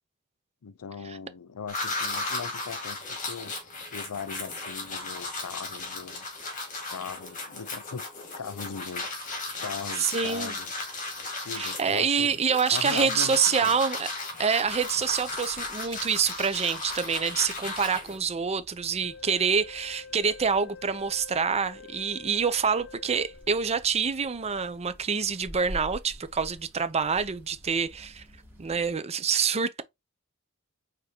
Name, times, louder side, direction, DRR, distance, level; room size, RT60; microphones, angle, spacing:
voice 1, 0.6-3.5 3.9-6.3 6.9-9.1 9.6-10.7 11.4-12.4 12.7-13.7, left 6 dB, 85° left, 0.5 m, -39 dB
sound 1, 1.7-18.2, left 3 dB, 35° left, 1.9 m, -35 dB
voice 2, 10.0-10.5 11.5-14.1 14.4-28.2 28.6-29.8, right 6 dB, 30° right, 0.5 m, -26 dB
sound 2, 14.6-28.9, equal, 10° right, 2.1 m, -49 dB
Wind instrument woodwind instrument, 19.0-23.7, left 5 dB, 55° left, 1.2 m, -47 dB
5.0 x 3.6 x 2.8 m
head